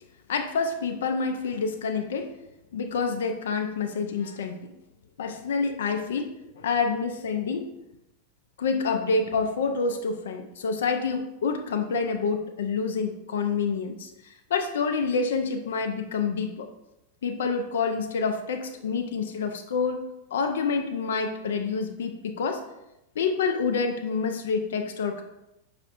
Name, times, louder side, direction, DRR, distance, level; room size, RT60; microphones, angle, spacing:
voice 1, 0.3-2.3 2.7-4.6 5.2-7.7 8.6-16.7 17.2-20.0 20.3-22.6 23.2-25.2, left 5 dB, 60° left, 5 dB, 0.3 m, -27 dB
4.9 x 2.4 x 2.5 m, 0.91 s
figure-of-eight pair, 90°, 0 cm